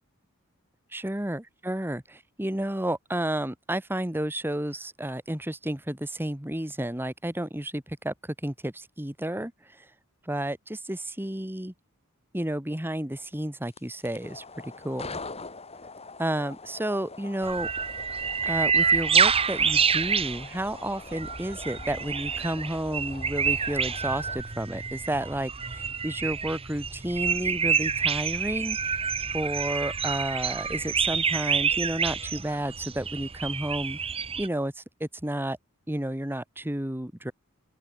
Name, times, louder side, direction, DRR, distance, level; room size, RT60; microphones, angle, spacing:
voice 1, 0.9-8.1 8.4-9.5 9.8-9.9 10.3-11.7 12.3-15.2 16.2-17.7 18.4-29.1 29.3-34.0 34.4-35.6 35.9-37.3, right 1 dB, 10° right, 1.7 m, -31 dB
sound 1, 13.6-24.4, left 3 dB, 30° left, 7.0 m, -44 dB
sound 2, 17.4-34.5, right 6 dB, 25° right, 1.2 m, -27 dB
open air
head